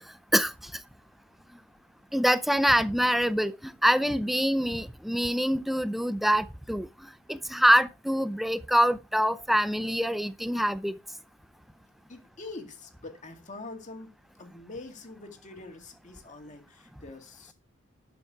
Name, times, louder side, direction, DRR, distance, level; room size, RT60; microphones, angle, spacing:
voice 1, 0.3-0.7 2.1-6.9 7.3-11.0, equal, ahead, 0.5 m, -25 dB
voice 2, 12.1-14.1 14.4-17.5, left 3 dB, 35° left, 2.2 m, -44 dB
12.0 x 5.8 x 4.7 m
head